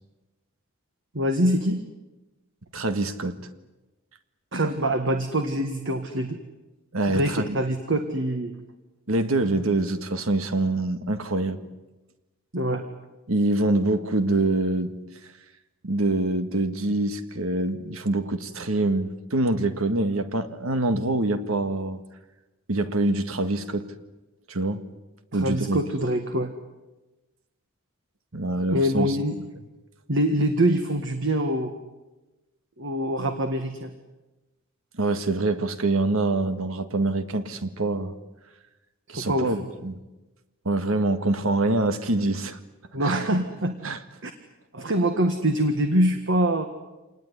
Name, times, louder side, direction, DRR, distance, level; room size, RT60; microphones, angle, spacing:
voice 1, 1.1-1.8 4.5-6.4 7.1-8.5 12.5-12.8 25.3-26.5 28.7-29.3 30.1-31.7 32.8-33.9 39.1-39.5 42.9-43.8 44.2-44.3 44.7-46.7, right 1 dB, 60° right, 7 dB, 1.7 m, -24 dB
voice 2, 2.7-3.4 6.9-7.6 9.1-11.6 13.3-14.9 15.8-22.0 22.7-23.9 24.5-24.8 25.3-25.8 28.3-29.2 35.0-38.1 39.1-40.0 40.7-42.6 43.0-43.3 43.8-44.0, right 2 dB, 80° right, 10 dB, 1.8 m, -25 dB
26.5 x 19.5 x 9.8 m, 1.1 s
head